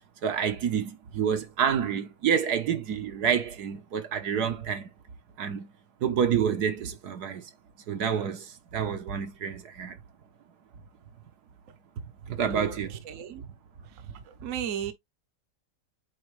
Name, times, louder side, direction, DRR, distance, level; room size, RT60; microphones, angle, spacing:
voice 1, 0.2-4.9 5.4-5.7 6.0-7.4 7.9-8.4 8.7-10.0 12.3-12.9, right 7 dB, 70° right, 1.6 m, -28 dB
voice 2, 13.1-13.4 14.4-14.9, right 9 dB, 55° right, 1.2 m, -34 dB
8.4 x 3.6 x 3.3 m
omnidirectional pair, 1.8 m